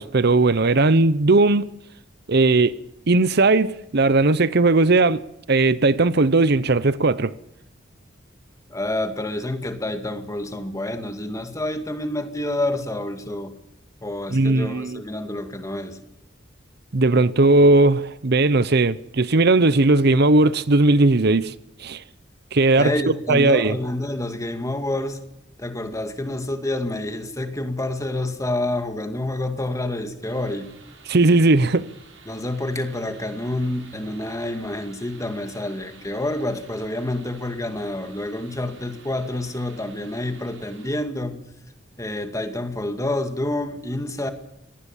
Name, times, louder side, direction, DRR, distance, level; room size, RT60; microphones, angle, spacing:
voice 1, 0.0-1.6 2.3-2.8 3.1-5.2 5.5-7.3 14.3-15.0 16.9-21.5 21.8-22.0 22.5-22.9 23.3-23.8 31.1-31.8, right 2 dB, 60° right, 0.8 m, -17 dB
voice 2, 8.7-13.5 14.0-16.0 22.8-25.2 25.6-30.7 32.3-41.4 42.0-44.3, left 1 dB, 15° left, 2.2 m, -28 dB
sound 1, 30.2-41.0, right 5 dB, 85° right, 7.5 m, -50 dB
25.0 x 19.0 x 7.3 m
head